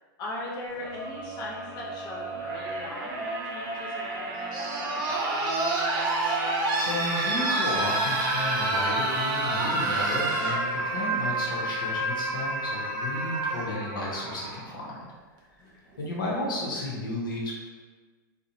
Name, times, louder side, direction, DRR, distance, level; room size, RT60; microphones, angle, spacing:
voice 1, 0.2-5.2 15.6-16.0, left 1 dB, 40° left, -5 dB, 0.7 m, -39 dB
sound 1, 0.7-14.7 15.9-16.0, right 2 dB, 35° right, 0.5 m, -29 dB
voice 2, 6.8-15.0 16.0-17.5, left 2 dB, 90° left, -5 dB, 0.7 m, -33 dB
2.5 x 2.0 x 2.7 m, 1.4 s
hypercardioid pair, 125°, 11 cm